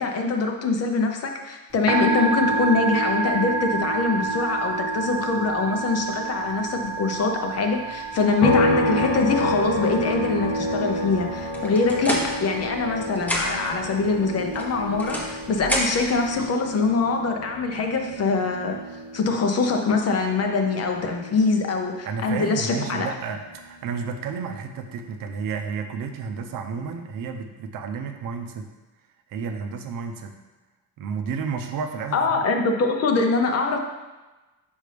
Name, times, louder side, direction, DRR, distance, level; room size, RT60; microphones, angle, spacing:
voice 1, 0.0-18.8 19.1-23.1 32.1-33.8, left 4 dB, 40° left, 3 dB, 0.7 m, -24 dB
Musical instrument, 1.7-16.4, right 3 dB, 25° right, 1.1 m, -30 dB
sound 1, 8.4-22.0 22.3-24.5, left 1 dB, 90° left, 0.9 m, -30 dB
sound 2, 11.5-12.9 13.2-13.8 14.5-16.2, equal, 5° left, 0.9 m, -29 dB
voice 2, 22.0-28.6 29.3-30.3 31.0-32.4, right 5 dB, 60° right, 5 dB, 0.7 m, -31 dB
5.5 x 5.1 x 3.3 m, 1.1 s
cardioid pair, 130°, 38 cm